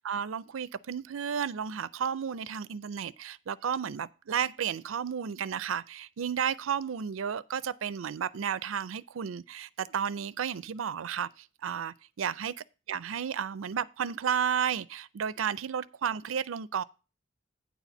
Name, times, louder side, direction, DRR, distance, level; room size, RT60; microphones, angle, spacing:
voice 1, 0.0-12.5 12.9-16.8, right 7 dB, 90° right, 0.5 m, -32 dB
9.3 x 4.2 x 7.1 m
head